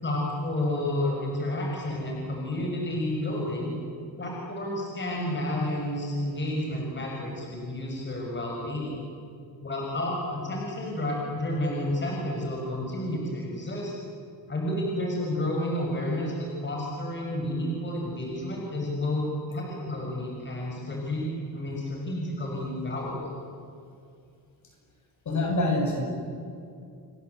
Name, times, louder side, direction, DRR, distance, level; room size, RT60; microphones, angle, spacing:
voice 1, 0.0-3.7 4.2-8.9 9.6-13.9 14.5-23.4, left 1 dB, 25° left, -1 dB, 6.6 m, -30 dB
voice 2, 25.2-26.0, left 1 dB, 45° left, 2 dB, 7.8 m, -25 dB
29.5 x 23.5 x 8.3 m, 2.4 s
cardioid pair, 130°, 41 cm